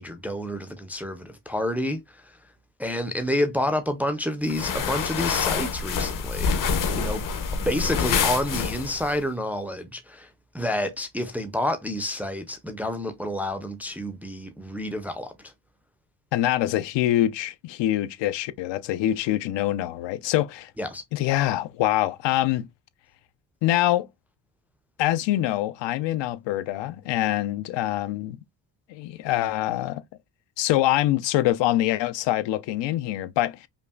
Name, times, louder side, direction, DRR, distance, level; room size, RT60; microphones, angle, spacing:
voice 1, 0.0-2.4 2.8-7.2 7.5-10.3 10.5-15.5 20.8-21.0, left 1 dB, 5° right, 0.3 m, -29 dB
sound 1, 4.5-9.1, left 6 dB, 50° left, 0.8 m, -26 dB
voice 2, 16.3-20.7 21.1-22.7 23.6-24.1 25.0-28.4 28.9-30.0 30.6-33.7, left 14 dB, 85° left, 0.6 m, -24 dB
5.3 x 2.4 x 2.3 m
cardioid pair, 160°, 43 cm